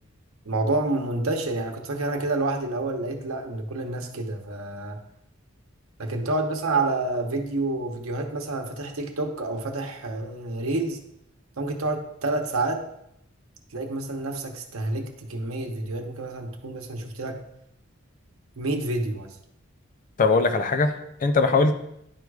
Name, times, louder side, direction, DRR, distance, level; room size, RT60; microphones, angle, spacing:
voice 1, 0.4-5.0 6.0-11.0 11.6-12.8 13.7-17.4 18.6-19.3, right 2 dB, 85° right, 3 dB, 0.9 m, -28 dB
voice 2, 20.2-21.7, left 3 dB, 40° left, 8 dB, 0.5 m, -21 dB
10.5 x 4.7 x 2.3 m, 0.77 s
head